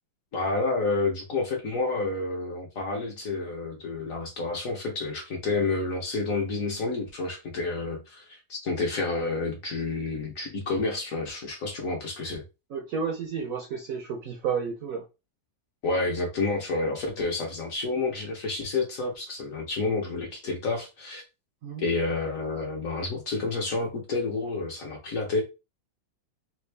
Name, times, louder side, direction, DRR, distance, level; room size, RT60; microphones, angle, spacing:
voice 1, 0.3-12.4 15.8-21.2 21.8-25.4, left 3 dB, 55° left, 1.1 m, -29 dB
voice 2, 12.7-15.0 21.6-21.8, right 6 dB, 70° right, 0.8 m, -31 dB
3.4 x 2.3 x 3.2 m
omnidirectional pair, 2.0 m